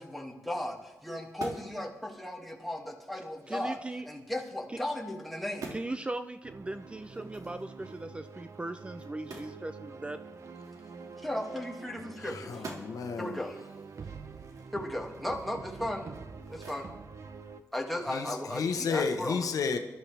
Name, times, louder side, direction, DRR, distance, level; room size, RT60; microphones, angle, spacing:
voice 1, 0.0-3.8 4.1-5.7 11.2-12.7 13.2-13.6 14.7-16.1 16.5-16.9 17.7-19.5, left 1 dB, ahead, 2.2 m, -36 dB
sound 1, 1.2-1.8 2.3-2.4 2.9-4.6 5.0-5.2 5.5-5.9 7.0-9.6 9.9-10.0 10.3-12.1 12.4-13.1 13.6-16.9 17.2-19.2, right 3 dB, 80° right, 2.2 m, -49 dB
voice 2, 3.5-4.1 4.7-4.8 5.7-10.2, right 2 dB, 20° right, 0.5 m, -38 dB
sound 2, 6.4-17.6, right 5 dB, 55° right, 0.8 m, -46 dB
voice 3, 12.2-13.5 18.1-19.8, left 5 dB, 85° left, 1.0 m, -32 dB
19.5 x 12.5 x 3.4 m
cardioid pair, 90°, 6 cm